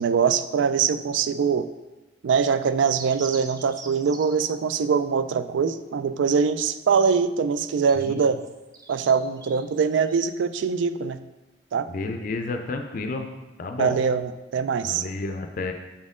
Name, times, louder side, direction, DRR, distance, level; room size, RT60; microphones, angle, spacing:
voice 1, 0.0-1.7 2.2-8.4 8.9-11.2 11.7-11.9 13.8-15.0, right 6 dB, 80° right, 12 dB, 0.3 m, -23 dB
sound 1, 2.9-4.5 7.5-10.2, right 3 dB, 20° right, 0.5 m, -45 dB
voice 2, 11.9-13.3 13.6-14.0 14.8-15.7, left 3 dB, 50° left, 5 dB, 0.4 m, -31 dB
7.1 x 4.2 x 3.6 m, 1.1 s
head